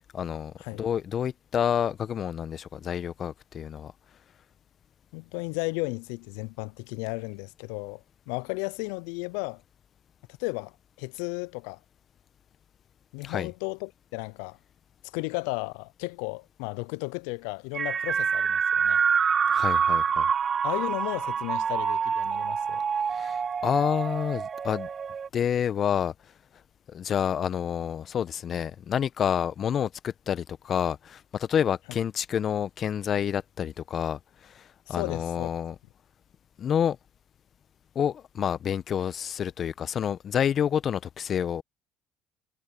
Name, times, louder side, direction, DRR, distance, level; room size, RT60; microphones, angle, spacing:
voice 1, 0.1-3.9 13.2-13.5 19.5-20.3 23.1-24.9 25.3-26.1 26.9-35.8 36.6-37.0 37.9-41.6, left 8 dB, 50° left, 1.2 m, -28 dB
voice 2, 5.1-9.6 10.4-11.8 13.1-14.6 15.1-19.0 20.6-22.8 34.9-35.5, left 30 dB, 75° left, 0.5 m, -34 dB
sound 1, 17.7-25.3, right 6 dB, 40° right, 1.6 m, -26 dB
hypercardioid pair, 60°, 0 cm